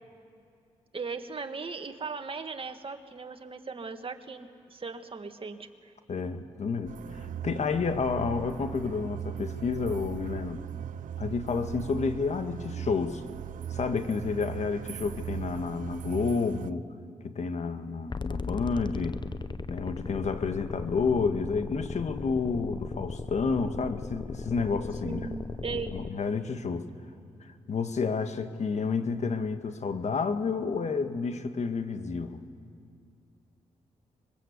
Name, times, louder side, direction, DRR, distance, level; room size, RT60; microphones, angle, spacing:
voice 1, 0.9-5.9 25.0-26.0, right 4 dB, 40° right, 6 dB, 1.9 m, -38 dB
voice 2, 6.1-10.6 11.2-13.2 13.7-16.9 17.2-19.2 19.7-25.3 25.9-26.9 27.7-32.4, left 5 dB, 60° left, 8 dB, 1.7 m, -30 dB
sound 1, 6.9-16.7, right 10 dB, 75° right, 0.6 m, -39 dB
sound 2, 18.1-26.1, left 4 dB, 35° left, 0.9 m, -37 dB
26.0 x 22.0 x 8.3 m, 2.5 s
supercardioid pair, 50°, 13 cm